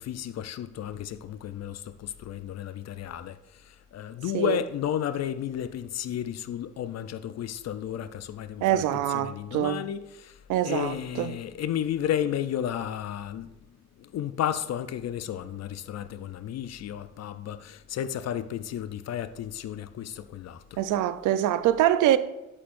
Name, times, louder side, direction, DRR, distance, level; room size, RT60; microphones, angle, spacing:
voice 1, 0.0-10.4 10.6-13.5 14.0-20.8, left 10 dB, 60° left, 0.5 m, -33 dB
voice 2, 8.6-9.8 10.5-11.3 20.8-22.2, right 12 dB, 90° right, 0.6 m, -24 dB
9.4 x 8.4 x 2.6 m
cardioid pair, 90°, 30 cm